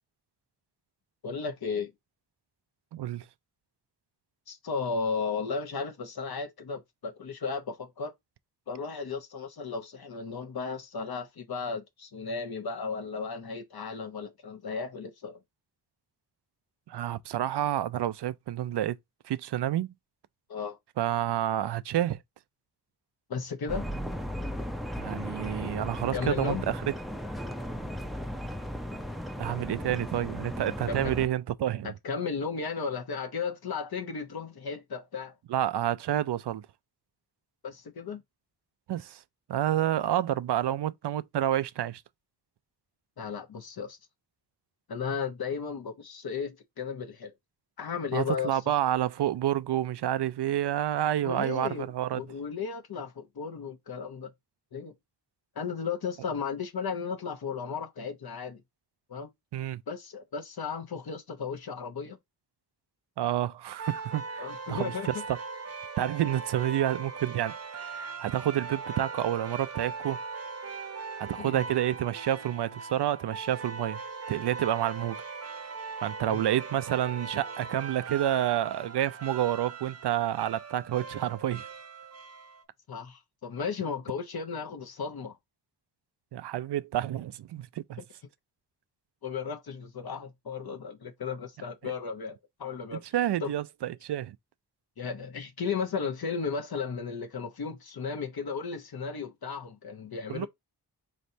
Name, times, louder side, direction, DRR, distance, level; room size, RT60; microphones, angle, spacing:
voice 1, 1.2-1.9 4.5-8.1 8.7-15.4 20.5-20.8 23.3-23.9 26.1-26.6 30.9-31.2 31.8-35.3 37.6-38.2 43.2-44.0 44.9-47.3 47.8-48.6 51.2-51.8 52.1-54.3 54.7-54.9 55.6-58.6 59.1-59.3 59.9-62.2 64.4-65.2 71.4-71.6 76.3-76.4 82.9-85.4 89.2-93.0 93.4-93.5 95.0-100.5, left 5 dB, 65° left, 0.9 m, -35 dB
voice 2, 2.9-3.3 16.9-19.0 19.2-19.9 21.0-22.2 25.0-26.8 29.4-31.9 35.5-36.7 38.9-39.2 39.5-42.0 48.1-52.2 59.5-59.8 63.2-65.4 66.0-70.2 71.2-74.0 74.3-75.2 76.0-81.7 86.3-88.0 91.8-91.9 92.9-94.4 100.3-100.5, right 12 dB, 75° right, 0.5 m, -29 dB
sound 1, 23.7-31.3, equal, ahead, 0.5 m, -36 dB
sound 2, 63.8-82.6, right 4 dB, 40° right, 0.8 m, -40 dB
4.3 x 3.2 x 2.6 m
wide cardioid pair, 110°, 40 cm